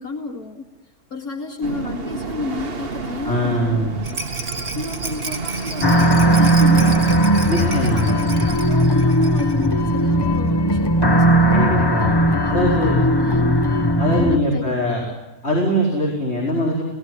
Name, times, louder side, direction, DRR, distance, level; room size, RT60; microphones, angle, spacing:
voice 1, 0.0-11.9 12.4-13.7 14.2-15.2, left 3 dB, 75° left, 5 dB, 2.6 m, -32 dB
sound 1, 1.6-8.2, right 4 dB, 40° right, 1.7 m, -30 dB
voice 2, 3.2-4.0 7.5-8.4 11.5-12.1 12.5-13.0 14.0-15.0 15.4-16.8, equal, 45° left, -2 dB, 5.6 m, -21 dB
Rattle, 4.0-9.7 10.0-10.1 10.4-10.5, right 3 dB, 65° right, 3.9 m, -33 dB
sound 2, 5.8-14.4, right 1 dB, 15° left, 1.3 m, -17 dB
29.0 x 19.5 x 9.8 m, 1.1 s
omnidirectional pair, 1.6 m